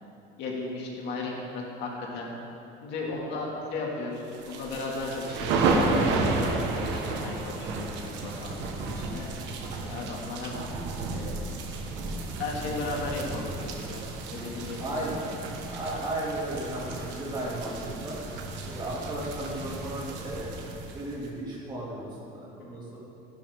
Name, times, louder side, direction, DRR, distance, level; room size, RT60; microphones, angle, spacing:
voice 1, 0.4-2.3 2.8-9.3 9.7-10.6 11.1-11.4 12.4-14.0 14.3-15.2 19.0-19.1 22.6-22.7, left 3 dB, 55° left, -2 dB, 2.1 m, -36 dB
sound 1, 4.3-21.3, right 3 dB, 60° right, 1.3 m, -32 dB
voice 2, 14.8-15.4 15.7-18.2 18.7-23.0, right 1 dB, 20° right, -6 dB, 2.5 m, -35 dB
15.0 x 11.5 x 3.6 m, 2.8 s
cardioid pair, 180°, 21 cm